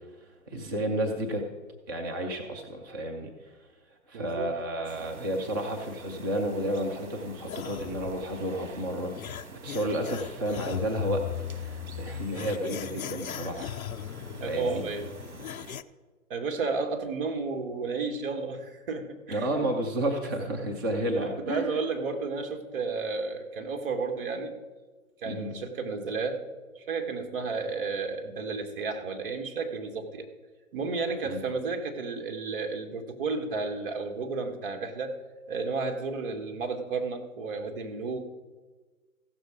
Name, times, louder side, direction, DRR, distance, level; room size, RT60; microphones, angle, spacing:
voice 1, 0.5-1.5 1.9-3.5 4.1-13.7 14.0-14.8 19.3-21.8 25.3-25.6 31.2-31.5, right 1 dB, 15° right, 2 dB, 0.4 m, -31 dB
voice 2, 4.1-4.5 14.3-15.1 16.3-19.5 21.0-24.5 25.2-26.4 26.7-30.3 30.7-35.2 35.5-38.2, right 4 dB, 40° right, 4 dB, 1.4 m, -32 dB
sound 1, 4.8-15.8, right 4 dB, 75° right, 1.2 m, -48 dB
sound 2, 7.5-15.8, left 10 dB, 75° left, 0.6 m, -38 dB
15.0 x 6.7 x 5.0 m, 1.3 s
hypercardioid pair, 135°, 42 cm